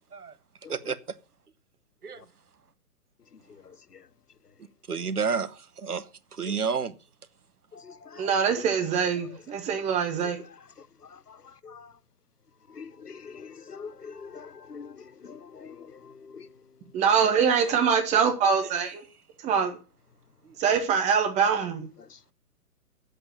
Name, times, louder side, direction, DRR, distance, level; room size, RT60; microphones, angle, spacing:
voice 1, 4.9-6.9 17.7-17.8 18.6-18.7 20.4-20.5, right 5 dB, 75° right, 1.1 m, -30 dB
voice 2, 8.2-10.4 16.9-19.0 19.4-19.8 20.6-21.9, right 6 dB, 15° right, 1.3 m, -24 dB
voice 3, 12.8-14.9 15.3-15.8 16.3-16.4, left 5 dB, 90° left, 0.7 m, -43 dB
8.6 x 8.0 x 6.8 m
figure-of-eight pair, 125°, 45 cm